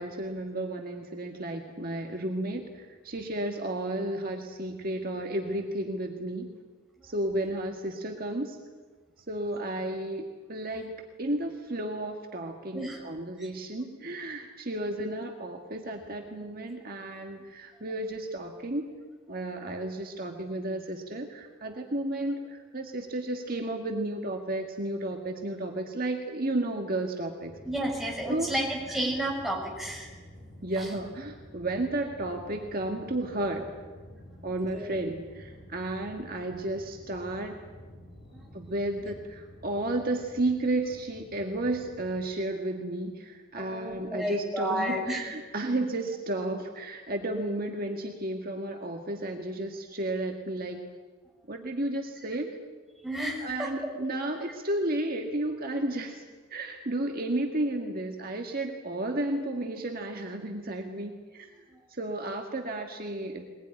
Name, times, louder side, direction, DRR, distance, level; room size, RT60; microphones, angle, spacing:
voice 1, 0.0-6.5 7.0-8.6 9.3-18.9 19.3-27.5 28.3-28.5 30.6-33.7 34.4-37.6 38.5-50.8 51.5-52.5 53.4-56.2 56.5-61.5 62.0-63.4, right 1 dB, 45° right, 3 dB, 1.9 m, -32 dB
sound 1, 27.4-42.2, equal, 35° left, 7.8 m, -50 dB
voice 2, 27.6-30.1 30.8-30.9 34.7-34.9 38.3-38.4 43.6-45.2 53.0-53.7 61.7-61.8, right 1 dB, ahead, -2 dB, 6.1 m, -31 dB
22.0 x 20.5 x 10.0 m, 1.4 s
head